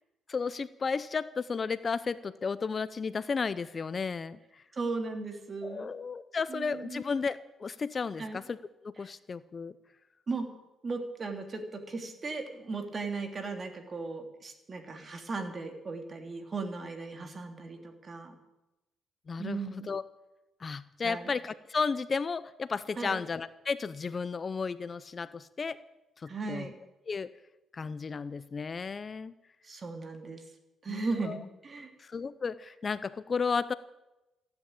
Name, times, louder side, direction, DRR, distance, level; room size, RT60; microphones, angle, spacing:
voice 1, 0.3-4.6 5.6-9.7 19.3-20.0 20.6-25.8 26.2-26.7 27.1-27.3 27.7-29.3 30.9-31.4 32.0-33.7, left 5 dB, 40° left, 16 dB, 0.6 m, -33 dB
voice 2, 4.7-5.9 6.5-7.0 8.2-8.4 10.3-10.5 10.8-18.4 19.4-19.9 21.0-21.3 23.0-23.2 26.3-26.7 29.6-30.4 30.8-31.9, right 3 dB, 35° right, 5 dB, 2.8 m, -37 dB
15.5 x 10.5 x 8.8 m, 0.98 s
cardioid pair, 90°, 0 cm